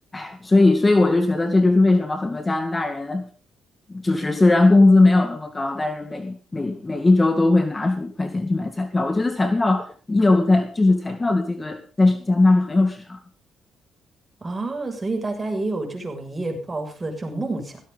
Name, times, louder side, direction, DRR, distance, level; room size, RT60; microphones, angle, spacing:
voice 1, 0.1-3.3 3.9-13.2, left 2 dB, 20° left, 7 dB, 2.1 m, -19 dB
voice 2, 14.4-17.8, right 2 dB, 25° right, 4 dB, 6.9 m, -28 dB
17.0 x 16.5 x 4.1 m, 0.38 s
cardioid pair, 90°, 0 cm